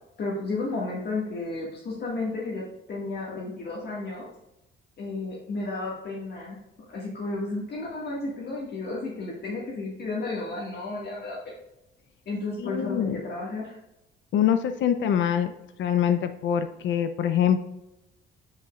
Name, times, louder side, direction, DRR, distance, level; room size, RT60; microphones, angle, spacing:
voice 1, 0.2-4.3 5.0-6.6 6.9-11.5 12.3-13.8, left 3 dB, 55° left, -3 dB, 1.8 m, -32 dB
voice 2, 12.6-13.2 14.3-15.5 15.8-17.6, left 9 dB, 75° left, 9 dB, 0.6 m, -24 dB
9.4 x 5.1 x 2.4 m, 0.91 s
cardioid pair, 90°, 20 cm